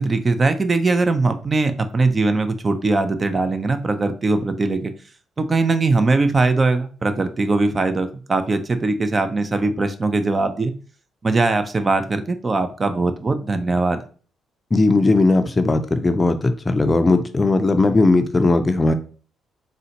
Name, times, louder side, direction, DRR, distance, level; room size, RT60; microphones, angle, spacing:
voice 1, 0.0-4.9 5.4-10.7 11.2-14.0, right 3 dB, 35° right, 9 dB, 0.4 m, -20 dB
voice 2, 14.7-18.9, left 2 dB, 25° left, 9 dB, 0.4 m, -17 dB
3.7 x 2.1 x 2.8 m, 0.40 s
supercardioid pair, 70°, 0 cm